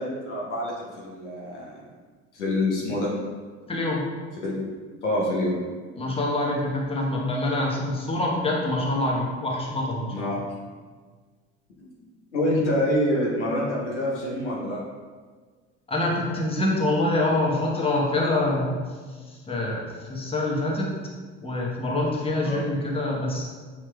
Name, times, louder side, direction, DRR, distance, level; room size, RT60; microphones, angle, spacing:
voice 1, 0.0-1.8 2.3-3.1 4.4-4.7 5.0-5.6 10.1-10.4 12.3-14.8 22.4-22.6, left 1 dB, 85° left, -4 dB, 0.9 m, -26 dB
voice 2, 3.7-4.0 5.9-10.3 15.9-18.8 19.3-20.9 21.4-23.4, left 1 dB, 15° left, -3 dB, 0.9 m, -25 dB
5.3 x 3.0 x 2.3 m, 1.5 s
hypercardioid pair, 60°, 34 cm